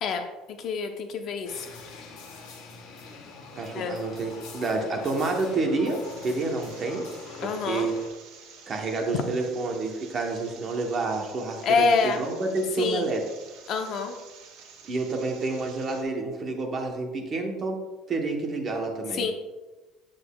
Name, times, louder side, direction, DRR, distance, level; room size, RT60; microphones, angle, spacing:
voice 1, 0.0-1.7 3.7-4.0 7.4-7.9 11.6-12.2 12.8-13.1 13.7-14.1 19.1-19.3, left 5 dB, 40° left, 5 dB, 0.6 m, -26 dB
sound 1, 1.4-8.1, left 4 dB, 65° left, 1.3 m, -43 dB
voice 2, 3.5-7.0 7.4-7.9 8.7-13.2 14.8-17.8 18.1-19.2, right 3 dB, 25° right, 2 dB, 0.9 m, -29 dB
sound 2, 6.0-16.0, right 6 dB, 65° right, 1.3 m, -50 dB
8.3 x 7.7 x 2.3 m, 1.1 s
cardioid pair, 175°, 0 cm